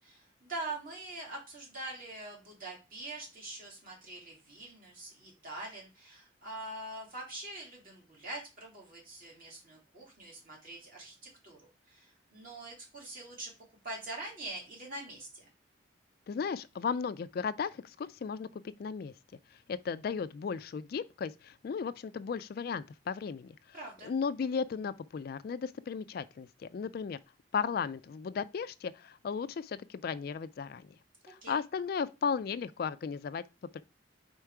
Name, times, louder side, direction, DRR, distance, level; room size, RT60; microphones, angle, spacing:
voice 1, 0.0-13.5 13.8-15.5 23.7-24.1 31.4-31.6, right 2 dB, 50° right, 2.6 m, -44 dB
voice 2, 16.3-19.1 19.7-23.8 24.0-27.2 27.5-30.9 31.3-33.4 33.7-33.8, left 6 dB, 55° left, 0.3 m, -35 dB
4.5 x 4.4 x 4.8 m
head